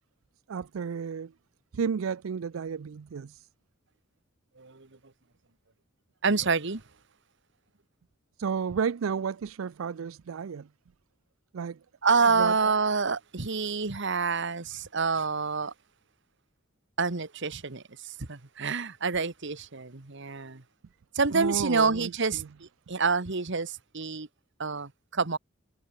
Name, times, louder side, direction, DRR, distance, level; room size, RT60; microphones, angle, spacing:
voice 1, 0.5-1.3 1.7-3.5 8.4-10.7 11.5-11.8 12.4-12.7 21.3-22.5, right 6 dB, 90° right, 0.4 m, -32 dB
voice 2, 4.6-4.9 6.2-6.8 12.0-15.7 17.0-20.6 21.1-24.3 24.6-25.4, right 4 dB, 65° right, 1.5 m, -27 dB
head